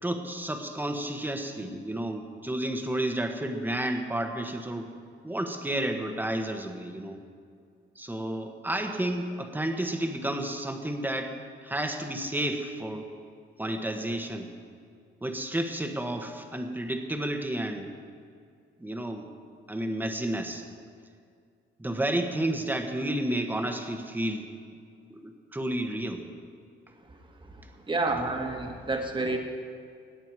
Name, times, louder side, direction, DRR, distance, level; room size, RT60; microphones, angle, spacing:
voice 1, 0.0-4.9 5.2-7.2 7.9-11.3 11.6-13.1 13.6-14.5 15.2-17.9 18.8-19.4 19.7-20.7 21.8-24.5 25.1-26.2, right 1 dB, 10° right, 4 dB, 1.4 m, -31 dB
voice 2, 27.9-29.4, right 2 dB, 25° right, 3 dB, 1.8 m, -29 dB
18.5 x 8.7 x 4.8 m, 2.2 s
cardioid pair, 90°, 20 cm